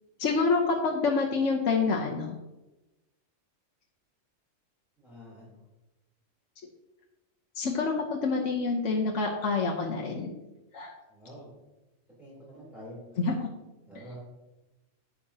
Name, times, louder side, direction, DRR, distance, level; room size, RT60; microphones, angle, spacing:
voice 1, 0.2-2.3 7.5-10.3 10.7-10.9 13.2-13.5, left 4 dB, 70° left, 0 dB, 1.3 m, -27 dB
voice 2, 5.0-5.6 11.1-11.5 12.2-13.2 13.9-14.2, equal, ahead, -8 dB, 3.4 m, -47 dB
11.5 x 8.6 x 2.8 m, 1.0 s
omnidirectional pair, 1.3 m